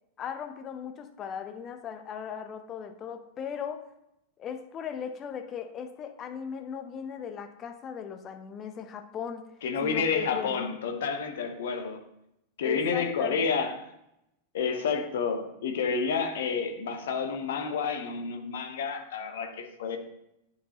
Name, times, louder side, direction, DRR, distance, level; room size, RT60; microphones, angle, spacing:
voice 1, 0.2-3.8 4.4-9.5 9.8-10.6 12.6-13.4, left 7 dB, 30° left, 7 dB, 0.7 m, -38 dB
voice 2, 9.6-12.0 12.6-13.9 14.5-20.0, left 5 dB, 60° left, 6 dB, 0.9 m, -30 dB
10.0 x 4.5 x 2.9 m, 0.82 s
figure-of-eight pair, 90°, 0 cm